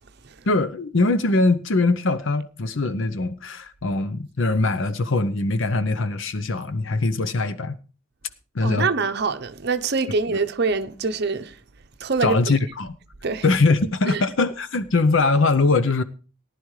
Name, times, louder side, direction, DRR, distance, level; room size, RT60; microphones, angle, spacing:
voice 1, 0.5-7.8 8.5-8.9 10.3-10.4 12.2-13.0 13.4-16.0, left 3 dB, 60° left, 0.7 m, -22 dB
voice 2, 8.6-11.5 12.0-12.4 13.2-13.4 14.1-14.2, right 4 dB, 50° right, 0.7 m, -24 dB
18.5 x 11.0 x 3.2 m
head